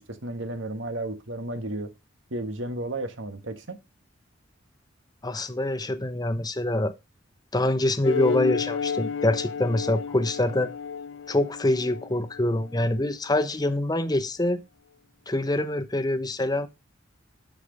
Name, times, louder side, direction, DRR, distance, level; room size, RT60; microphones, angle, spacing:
voice 1, 0.0-1.9 2.3-3.8, right 1 dB, 80° right, 1.6 m, -33 dB
voice 2, 5.2-6.9 7.5-10.7 11.3-14.6 15.3-16.7, left 1 dB, 20° left, 0.9 m, -25 dB
sound 1, 8.0-13.0, left 6 dB, 65° left, 0.5 m, -32 dB
9.9 x 6.1 x 5.2 m
head